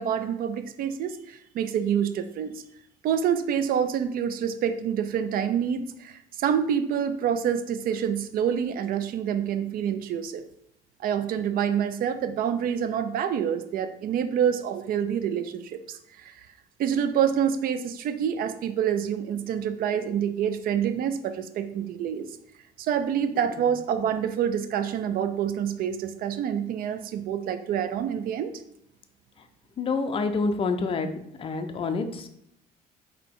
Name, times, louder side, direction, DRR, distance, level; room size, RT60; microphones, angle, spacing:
voice 1, 0.0-2.6 3.0-10.4 11.0-16.3 16.8-22.3 22.8-28.5, right 8 dB, 60° right, 10 dB, 0.4 m, -27 dB
voice 2, 29.8-31.1 31.4-32.3, left 4 dB, 35° left, 7 dB, 0.5 m, -27 dB
3.9 x 2.8 x 3.6 m, 0.76 s
cardioid pair, 110°, 17 cm